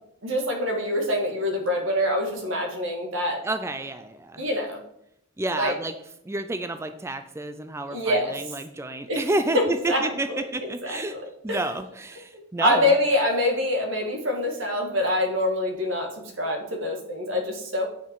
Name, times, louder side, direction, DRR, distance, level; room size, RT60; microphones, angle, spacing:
voice 1, 0.2-3.4 4.4-4.8 5.6-5.7 7.9-8.4 9.1-9.3 9.5-11.2 11.5-11.6 12.3-17.8, left 1 dB, 65° right, 2 dB, 1.9 m, -25 dB
voice 2, 3.4-4.4 5.4-5.9 6.3-10.3 10.5-11.1 11.4-12.9, right 2 dB, 15° right, 9 dB, 0.4 m, -30 dB
8.8 x 5.7 x 4.6 m, 0.75 s
head